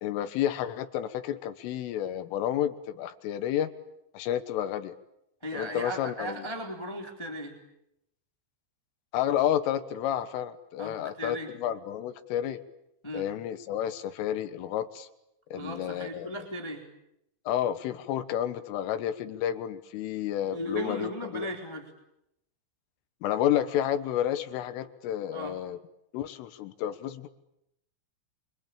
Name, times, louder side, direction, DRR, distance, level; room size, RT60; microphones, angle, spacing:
voice 1, 0.0-3.7 4.1-5.0 5.5-6.4 9.1-12.6 13.1-15.1 15.5-16.3 17.5-21.5 23.2-25.8 26.1-27.3, left 11 dB, 80° left, 10 dB, 3.8 m, -30 dB
voice 2, 5.4-7.6 10.8-11.5 13.0-13.3 15.5-16.8 20.5-21.9 25.2-25.6, equal, 5° left, 2 dB, 2.8 m, -36 dB
27.0 x 25.0 x 8.8 m, 0.83 s
omnidirectional pair, 5.9 m